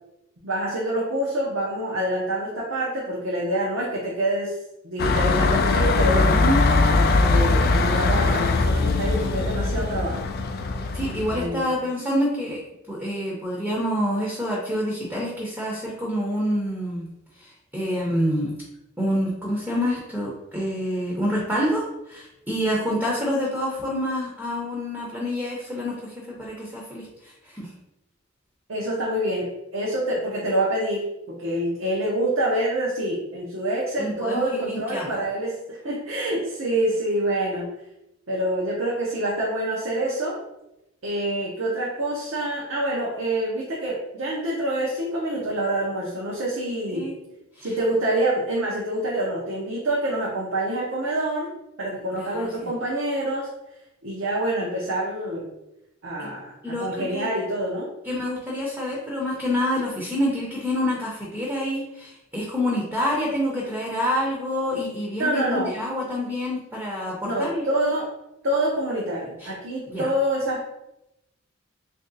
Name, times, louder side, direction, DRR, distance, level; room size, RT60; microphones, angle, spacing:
voice 1, 0.4-4.6 4.8-6.4 6.9-10.2 11.3-11.8 28.7-37.7 38.3-40.4 41.0-47.1 47.6-51.5 51.8-53.5 54.0-55.5 56.0-57.9 65.2-65.8 67.2-68.1 68.4-70.7, right 1 dB, 75° right, -4 dB, 0.7 m, -26 dB
sound 1, 5.0-11.5, left 3 dB, 50° left, 0.3 m, -21 dB
voice 2, 10.9-12.6 12.9-17.1 17.4-18.5 19.0-27.7 34.0-35.2 46.9-47.1 47.6-47.7 52.1-52.7 56.2-56.3 56.6-57.3 58.1-67.6 69.4-69.5 69.9-70.1, equal, 10° right, -4 dB, 0.6 m, -27 dB
3.0 x 2.6 x 3.9 m, 0.90 s
head